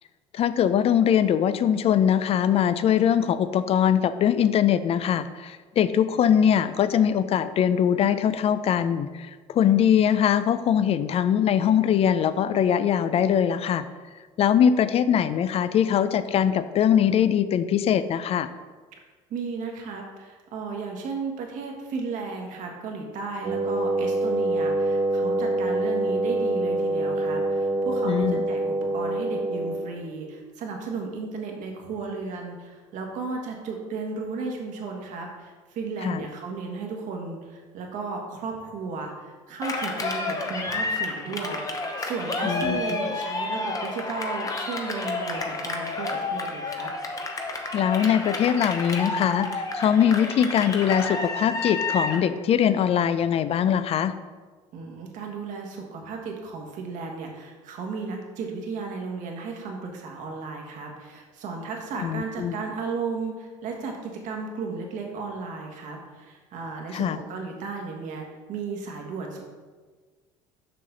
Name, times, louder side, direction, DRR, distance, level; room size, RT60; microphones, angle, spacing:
voice 1, 0.3-13.8 14.4-18.5 28.0-28.4 36.0-36.2 42.4-43.0 47.7-54.1 62.0-62.5 66.9-67.2, left 9 dB, 45° left, 13 dB, 0.5 m, -22 dB
voice 2, 19.3-46.9 54.7-69.5, right 4 dB, 65° right, 1 dB, 1.6 m, -34 dB
Wind instrument woodwind instrument, 23.4-30.0, right 2 dB, 45° right, 1.3 m, -25 dB
Cheering, 39.6-52.3, left 3 dB, 25° left, 1.0 m, -30 dB
6.7 x 5.7 x 3.9 m, 1.4 s
supercardioid pair, 95°, 14 cm